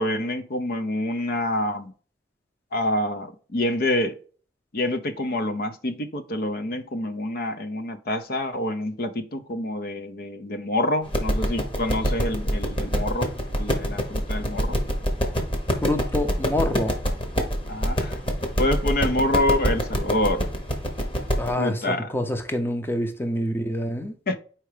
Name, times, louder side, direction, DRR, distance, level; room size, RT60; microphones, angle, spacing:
voice 1, 0.0-1.9 2.7-4.2 4.7-14.8 17.7-18.2 18.6-20.5 21.6-22.1 24.3-24.4, left 1 dB, 55° left, 0.6 m, -27 dB
sound 1, 11.1-21.5, equal, 30° left, 1.2 m, -26 dB
voice 2, 15.8-17.0 21.4-24.1, left 1 dB, 15° left, 0.6 m, -27 dB
4.7 x 4.4 x 4.9 m
head